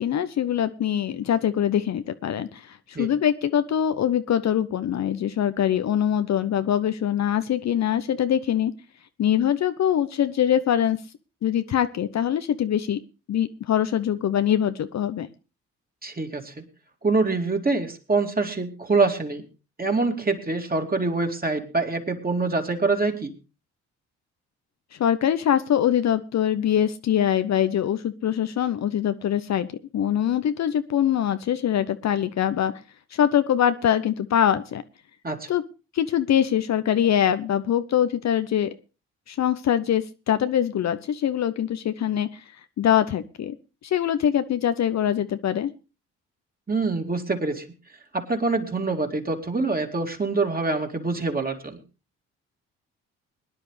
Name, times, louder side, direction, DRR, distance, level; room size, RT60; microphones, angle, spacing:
voice 1, 0.0-8.7 9.2-11.0 11.4-13.0 13.3-15.3 25.0-29.7 29.9-32.7 33.1-34.8 35.5-35.6 35.9-38.7 39.3-42.4 42.8-43.5 43.8-45.7, left 10 dB, 45° left, 11 dB, 0.8 m, -23 dB
voice 2, 16.0-16.6 17.0-19.4 19.8-23.3 35.2-35.4 46.7-47.7 48.1-51.8, right 3 dB, 25° right, 4 dB, 2.7 m, -25 dB
21.5 x 10.5 x 3.3 m, 0.32 s
hypercardioid pair, 45°, 37 cm